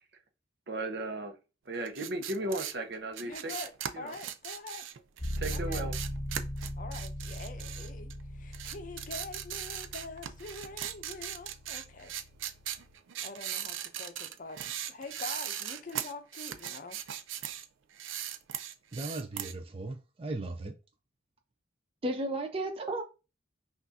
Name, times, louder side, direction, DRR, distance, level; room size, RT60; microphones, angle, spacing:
voice 1, 0.7-1.3 1.7-3.5 3.9-4.1 5.4-5.9, right 2 dB, 60° right, 0.8 m, -35 dB
sound 1, 1.8-8.2 8.5-17.7 17.9-19.5, right 10 dB, 85° right, 0.4 m, -39 dB
voice 2, 3.2-4.9 5.5-5.8 6.8-8.1 8.4-12.1 13.2-17.0, left 3 dB, 45° left, 0.6 m, -45 dB
sound 2, 5.2-12.9, equal, 15° left, 1.2 m, -40 dB
voice 3, 18.9-20.7 22.0-23.0, right 2 dB, 30° right, 0.4 m, -35 dB
5.8 x 2.5 x 2.7 m
head